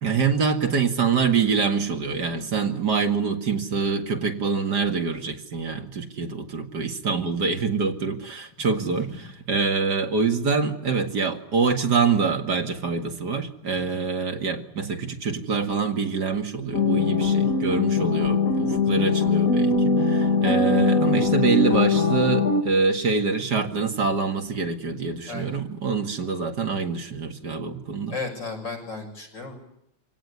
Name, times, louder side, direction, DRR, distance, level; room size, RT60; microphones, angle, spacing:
voice 1, 0.0-28.1, right 5 dB, 60° right, 5 dB, 2.6 m, -25 dB
voice 2, 8.7-9.2 13.7-14.0 21.7-21.9 25.3-25.6 28.1-29.6, left 4 dB, 70° left, 4 dB, 7.2 m, -35 dB
sound 1, 16.7-22.6, left 4 dB, 45° left, 2.8 m, -21 dB
26.5 x 17.5 x 9.6 m, 0.77 s
omnidirectional pair, 2.0 m